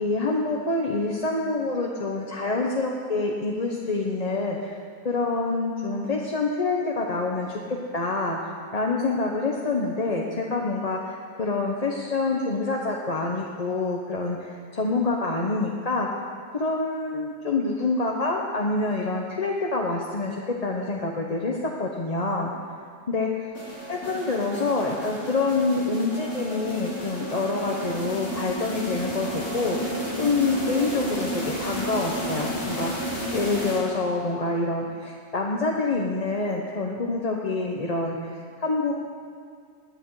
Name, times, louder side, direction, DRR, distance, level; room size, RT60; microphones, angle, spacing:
voice 1, 0.0-4.8 5.0-16.2 16.5-22.5 23.1-23.3 23.9-29.8 30.2-38.9, left 3 dB, 35° left, -1 dB, 1.0 m, -27 dB
sound 1, 23.5-34.2, equal, 85° left, 4.0 m, -32 dB
19.5 x 9.8 x 4.8 m, 2.1 s
omnidirectional pair, 1.2 m